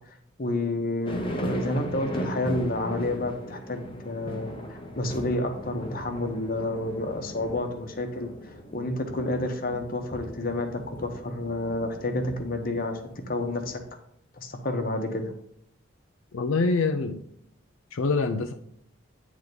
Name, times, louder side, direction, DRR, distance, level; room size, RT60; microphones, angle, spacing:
voice 1, 0.4-4.5 5.0-8.3 8.7-13.0 13.3-13.8 14.4-15.3, left 1 dB, 45° left, 5 dB, 1.0 m, -29 dB
sound 1, 1.1-13.8, equal, 25° left, 0.9 m, -38 dB
voice 2, 16.3-17.2 17.9-18.5, left 3 dB, 80° left, 5 dB, 0.5 m, -25 dB
9.4 x 3.6 x 5.2 m, 0.70 s
head